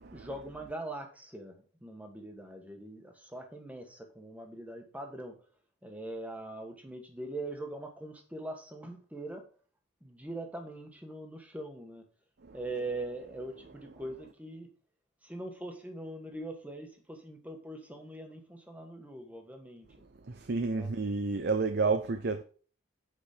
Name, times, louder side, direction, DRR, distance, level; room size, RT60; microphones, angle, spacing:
voice 1, 0.1-5.4 5.8-9.4 10.0-12.0 12.5-14.7 15.2-19.9 20.7-20.9, right 2 dB, 5° right, 1.4 m, -42 dB
voice 2, 20.3-22.4, right 4 dB, 50° right, 0.6 m, -30 dB
8.1 x 5.2 x 5.0 m
head